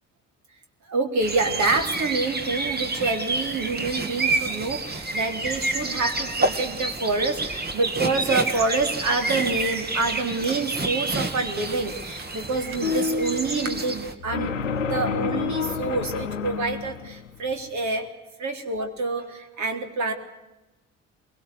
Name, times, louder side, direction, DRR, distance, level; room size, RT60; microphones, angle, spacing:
voice 1, 0.9-14.5 14.8-18.1 18.4-20.1, right 3 dB, 50° right, 5 dB, 3.8 m, -27 dB
sound 1, 1.2-14.1, right 2 dB, 25° right, 2.6 m, -29 dB
sound 2, 12.8-17.9, left 6 dB, 85° left, 1.0 m, -29 dB
23.5 x 22.5 x 8.1 m, 1.0 s
figure-of-eight pair, 50°, 37 cm